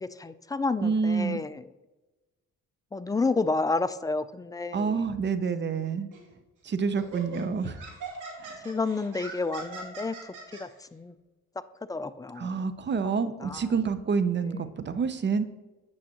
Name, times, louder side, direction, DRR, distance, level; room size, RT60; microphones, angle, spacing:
voice 1, 0.0-1.6 2.9-5.0 8.6-10.3 10.6-11.1 11.9-12.6 12.9-13.1 13.4-13.7, left 3 dB, 15° left, 12 dB, 0.3 m, -30 dB
voice 2, 0.8-1.4 4.7-6.1 6.6-7.8 8.4-8.6 12.4-15.5, right 5 dB, 35° right, 12 dB, 0.6 m, -28 dB
Laughter, 6.1-6.3 7.0-10.6, right 4 dB, 85° right, 2.6 m, -41 dB
8.6 x 6.4 x 2.9 m, 1.1 s
cardioid pair, 90°, 30 cm